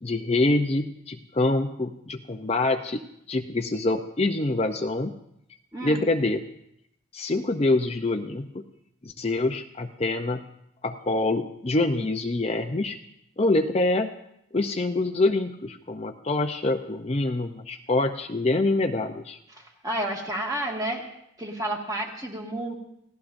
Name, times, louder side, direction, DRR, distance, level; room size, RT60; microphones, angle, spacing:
voice 1, 0.0-3.0 3.3-5.1 5.8-6.4 7.1-8.6 9.0-10.4 10.8-13.0 13.4-14.1 14.5-19.4, left 2 dB, 30° left, 4 dB, 0.6 m, -25 dB
voice 2, 5.7-6.0 19.5-21.1 21.4-22.7, right 1 dB, 20° right, 0 dB, 1.9 m, -31 dB
29.0 x 16.0 x 2.6 m, 0.78 s
head